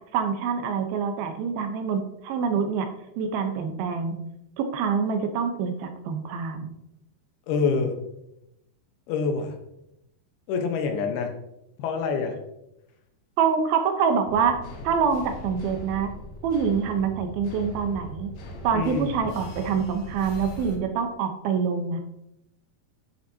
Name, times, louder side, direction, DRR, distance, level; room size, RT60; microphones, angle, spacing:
voice 1, 0.1-2.9 3.2-4.2 4.6-6.7 13.4-14.6 14.8-16.1 16.4-18.3 18.6-22.0, right 6 dB, 80° right, 6 dB, 2.7 m, -25 dB
voice 2, 7.5-8.0 9.1-9.6 10.5-11.3 11.8-12.4 18.7-19.1, left 5 dB, 90° left, 4 dB, 3.1 m, -26 dB
sound 1, 14.2-20.8, left 1 dB, 55° left, 2.3 m, -39 dB
10.5 x 7.9 x 2.8 m, 0.84 s
omnidirectional pair, 4.4 m